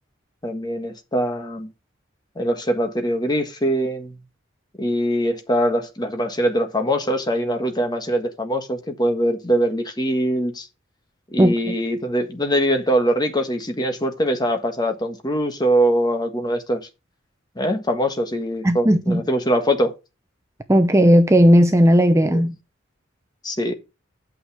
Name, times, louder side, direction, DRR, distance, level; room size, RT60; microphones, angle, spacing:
voice 1, 0.4-1.7 2.3-4.2 4.8-10.7 11.3-16.8 17.6-19.9 22.3-22.4 23.4-23.7, equal, 20° left, 1.4 m, -22 dB
voice 2, 11.4-11.7 18.6-19.2 20.7-22.5, equal, 15° right, 0.6 m, -15 dB
8.8 x 6.3 x 4.7 m
head